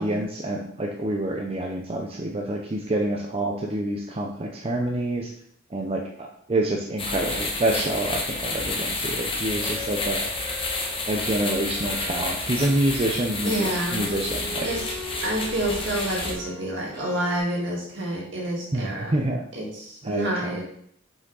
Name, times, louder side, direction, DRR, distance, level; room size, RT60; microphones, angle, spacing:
voice 1, 0.0-5.3 5.7-10.3 11.1-14.7 18.7-19.4 20.0-20.6, right 1 dB, 30° right, 0 dB, 0.6 m, -27 dB
sound 1, 7.0-16.3, left 2 dB, 30° left, 1.0 m, -30 dB
sound 2, 9.4-17.4, left 2 dB, 10° left, 1.5 m, -41 dB
voice 2, 13.4-14.0 14.6-14.8 15.2-19.1 19.5-20.6, right 1 dB, 65° right, -2 dB, 2.1 m, -28 dB
6.1 x 5.0 x 4.0 m, 0.66 s
head